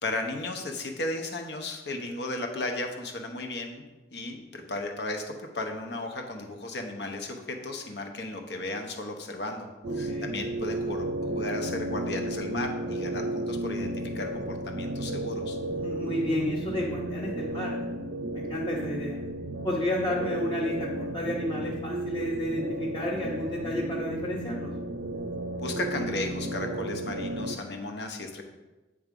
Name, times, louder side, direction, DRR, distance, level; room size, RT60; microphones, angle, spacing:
voice 1, 0.0-3.8 4.1-9.7 9.9-15.6 25.6-28.4, left 2 dB, 65° left, 4 dB, 0.9 m, -35 dB
sound 1, 9.8-27.6, right 1 dB, 65° right, 0.4 m, -33 dB
voice 2, 9.9-10.3 15.7-17.7 18.3-19.2 19.6-24.7, left 1 dB, 25° left, -5 dB, 0.9 m, -31 dB
8.6 x 3.6 x 5.2 m, 1.1 s
head